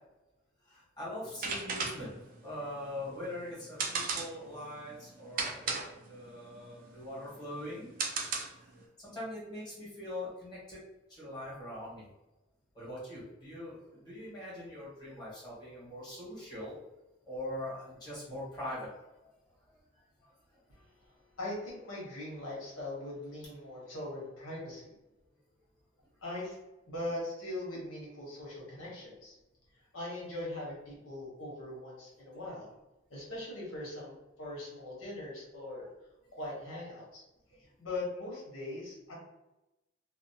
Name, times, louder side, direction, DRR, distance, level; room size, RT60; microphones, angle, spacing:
voice 1, 0.7-7.9 8.5-8.7 9.0-10.8 11.1-12.1 12.7-16.7 17.2-19.1 20.5-20.6, left 1 dB, 20° left, -9 dB, 1.3 m, -42 dB
sound 1, 1.2-8.8, right 4 dB, 45° right, 0.4 m, -37 dB
voice 2, 20.9-24.9 26.2-26.6 26.9-29.3 29.9-32.7 33.1-35.9 36.3-37.2 37.8-39.1, left 1 dB, 85° left, -5 dB, 1.1 m, -41 dB
2.6 x 2.0 x 2.7 m, 1.0 s
head